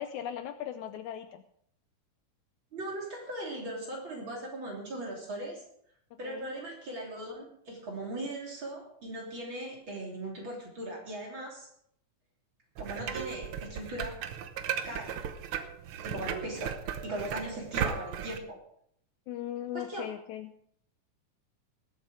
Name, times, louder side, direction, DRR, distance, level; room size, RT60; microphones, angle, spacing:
voice 1, 0.0-1.4 6.2-6.5 19.3-20.5, left 11 dB, 75° left, 8 dB, 2.0 m, -38 dB
voice 2, 2.7-5.6 6.2-11.7 12.8-14.2 14.8-15.2 16.0-18.6 19.7-20.1, right 1 dB, 40° right, -1 dB, 3.7 m, -39 dB
sound 1, 12.8-18.4, right 8 dB, 85° right, 1.1 m, -36 dB
19.5 x 8.5 x 4.8 m, 0.68 s
omnidirectional pair, 3.6 m